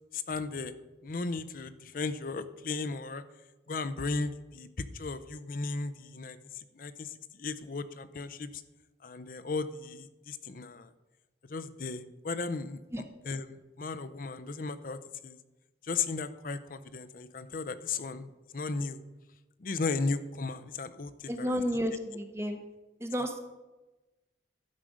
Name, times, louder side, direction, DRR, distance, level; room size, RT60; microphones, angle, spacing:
voice 1, 0.1-0.7 1.0-3.2 3.7-8.6 9.0-10.9 11.5-12.8 13.3-15.4 15.8-19.0 19.6-21.6, left 4 dB, 50° left, 12 dB, 0.5 m, -36 dB
voice 2, 21.3-22.6 23.0-23.4, equal, 15° right, 6 dB, 0.8 m, -32 dB
11.5 x 4.9 x 6.2 m, 1.1 s
head